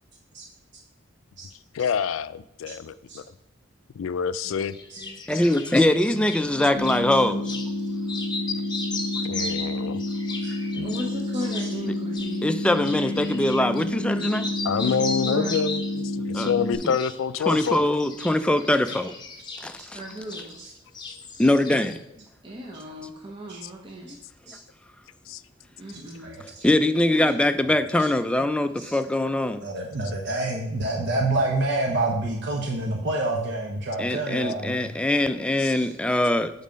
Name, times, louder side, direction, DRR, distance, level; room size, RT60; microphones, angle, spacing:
voice 1, 1.7-3.2 3.9-4.8 9.2-10.0 14.6-17.8 21.1-21.2 23.6-23.7 25.3-25.4 35.6-35.7, left 6 dB, 85° left, 0.4 m, -27 dB
sound 1, 4.7-7.0 7.4-7.7 8.0-13.9 14.2-16.0 16.3-17.2 17.4-20.7 20.9-22.0, left 3 dB, 25° left, 0.9 m, -36 dB
voice 2, 5.3-7.5 12.4-14.5 16.3-16.5 17.5-19.1 19.6-20.0 21.4-21.9 26.6-29.6 34.0-36.5, left 1 dB, 5° left, 0.4 m, -22 dB
voice 3, 6.1-6.7 7.0-7.1 10.4-11.0 11.3-12.4 14.1-14.7 19.8-19.9 20.6-20.7 23.5-23.6 24.5-24.6 25.9-26.6 28.0-28.1 28.8-29.0 29.6-34.9 35.7-35.9, right 2 dB, 60° right, 0.9 m, -29 dB
sound 2, 6.8-16.8, left 2 dB, 50° left, 0.8 m, -29 dB
voice 4, 10.8-12.4 14.8-15.5 19.9-20.6 22.4-24.1 25.8-26.4, equal, 25° right, 0.8 m, -36 dB
7.4 x 4.1 x 5.2 m
head